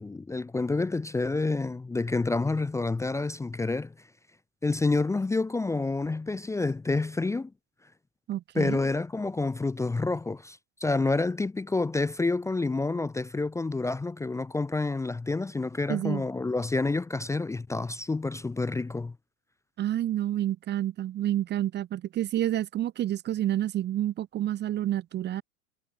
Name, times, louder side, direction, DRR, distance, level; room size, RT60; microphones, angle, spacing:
voice 1, 0.0-3.9 4.6-7.5 8.5-19.1, left 3 dB, 10° left, 0.9 m, -28 dB
voice 2, 8.3-8.8 15.9-16.2 19.8-25.4, right 12 dB, 25° right, 1.0 m, -29 dB
hypercardioid pair, 100°, 38 cm